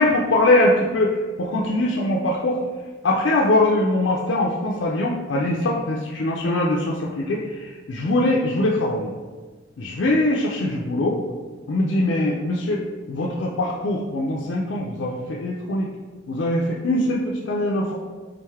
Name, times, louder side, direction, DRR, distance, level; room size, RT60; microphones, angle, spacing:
voice 1, 0.0-2.6 3.0-9.1 9.8-11.2 11.7-12.8 13.1-15.9 16.3-17.9, left 1 dB, 65° left, -2 dB, 0.4 m, -22 dB
3.6 x 3.5 x 3.2 m, 1.4 s
head